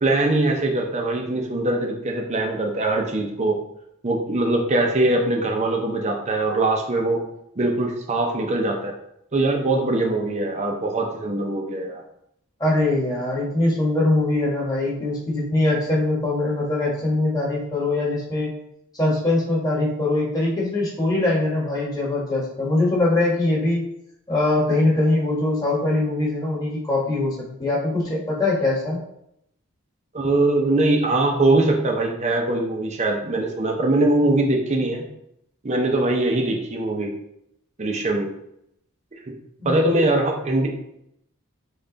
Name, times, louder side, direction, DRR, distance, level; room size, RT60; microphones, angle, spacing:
voice 1, 0.0-3.6 4.0-7.2 7.6-8.9 9.3-12.0 30.1-35.0 35.6-37.1 37.8-38.3 39.6-41.0, right 2 dB, 35° right, 1 dB, 0.6 m, -22 dB
voice 2, 12.6-18.5 18.9-23.9 24.3-27.3 27.6-29.0 39.6-39.7, left 2 dB, 20° left, -5 dB, 1.4 m, -22 dB
5.3 x 2.4 x 3.9 m, 0.77 s
head